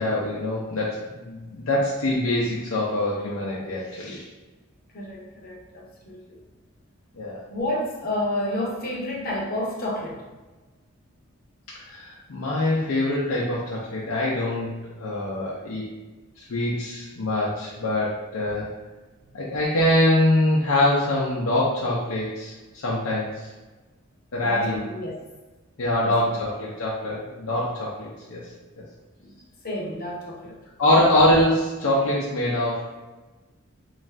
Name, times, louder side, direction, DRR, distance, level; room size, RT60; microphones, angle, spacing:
voice 1, 0.0-4.3 7.1-7.4 11.8-15.9 16.4-18.7 19.3-23.5 24.3-24.8 25.8-28.4 30.8-32.8, left 1 dB, 85° left, -4 dB, 0.5 m, -24 dB
voice 2, 4.9-6.4 7.5-10.2 19.2-19.3 24.4-25.2 26.0-26.3 29.2-29.3 29.6-30.6, left 1 dB, 45° left, -3 dB, 0.7 m, -30 dB
2.5 x 2.3 x 3.2 m, 1.2 s
head